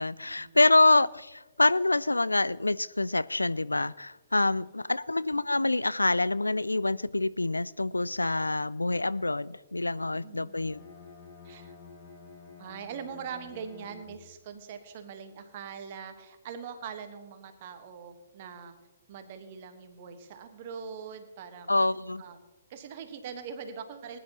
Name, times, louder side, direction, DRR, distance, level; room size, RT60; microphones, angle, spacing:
voice 1, 0.0-10.8 21.7-22.2, left 2 dB, 80° left, 19 dB, 0.3 m, -26 dB
voice 2, 10.1-10.7 11.4-11.7 12.6-18.8 19.1-21.8 22.2-22.4 22.7-24.2, right 7 dB, 40° right, 8 dB, 1.3 m, -42 dB
Bowed string instrument, 10.5-14.5, left 5 dB, 35° left, 2.5 m, -50 dB
20.0 x 10.5 x 3.0 m, 1.1 s
figure-of-eight pair, 120°, 0 cm